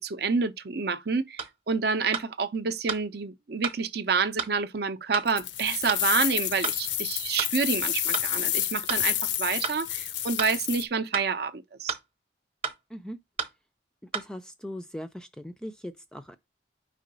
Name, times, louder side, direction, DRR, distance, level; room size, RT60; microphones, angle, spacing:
voice 1, 0.0-12.0, right 5 dB, 55° right, 0.5 m, -28 dB
sound 1, 1.4-1.5 2.1-2.3 2.9-3.0 3.6-3.8 4.4-4.5 5.1-5.3 5.9-6.0 6.6-6.8 7.4-7.5 8.1-8.3 8.9-9.0 9.6-9.8 10.4-10.5 11.1-11.3 11.9-12.1 12.6-12.8 13.4-13.6 14.1-14.3, right 5 dB, 30° right, 0.9 m, -31 dB
sound 2, 5.3-10.8, left 12 dB, 70° left, 0.5 m, -29 dB
voice 2, 14.1-16.4, equal, 5° left, 0.3 m, -39 dB
4.9 x 3.7 x 5.2 m
head